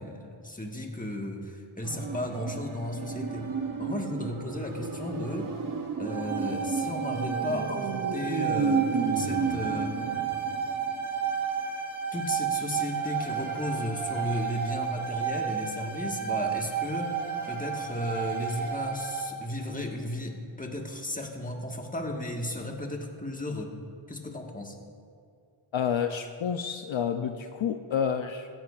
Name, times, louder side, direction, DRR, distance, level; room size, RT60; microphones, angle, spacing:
voice 1, 0.0-3.5 3.8-5.5 6.0-9.9 12.1-17.2 17.4-23.7 24.1-24.8, left 1 dB, 15° left, 1 dB, 1.4 m, -34 dB
sound 1, 1.8-3.9 4.4-19.3, right 7 dB, 70° right, 1.5 m, -33 dB
sound 2, 1.9-11.0 11.3-11.4, right 5 dB, 40° right, 0.6 m, -32 dB
voice 2, 25.7-28.5, left 7 dB, 65° left, 7 dB, 0.6 m, -29 dB
16.0 x 10.5 x 2.4 m, 2.3 s
wide cardioid pair, 50°, 50 cm